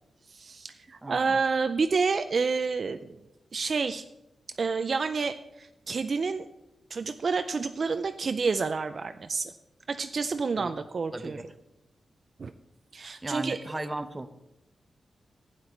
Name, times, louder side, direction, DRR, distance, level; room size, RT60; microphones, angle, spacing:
voice 1, 0.3-3.2 3.5-4.0 4.6-6.5 6.9-9.5 9.9-11.4 12.4-12.5 12.9-13.6, right 4 dB, 50° right, 9 dB, 0.4 m, -29 dB
voice 2, 1.0-1.4 10.6-10.7 11.1-11.5 13.2-14.3, right 2 dB, 20° right, 10 dB, 0.7 m, -36 dB
12.0 x 8.9 x 4.4 m, 0.91 s
wide cardioid pair, 115°, 0 cm